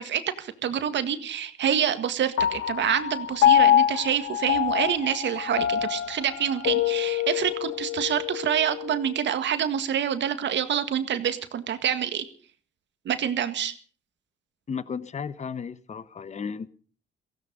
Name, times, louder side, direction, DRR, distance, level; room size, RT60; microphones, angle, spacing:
voice 1, 0.0-12.2 13.1-13.7, right 9 dB, 65° right, 10 dB, 1.8 m, -27 dB
Piano, 2.4-9.1, left 11 dB, 85° left, 1.0 m, -25 dB
voice 2, 14.7-16.7, left 6 dB, 35° left, 16 dB, 1.0 m, -34 dB
17.0 x 16.0 x 5.4 m, 0.42 s
cardioid pair, 90°, 20 cm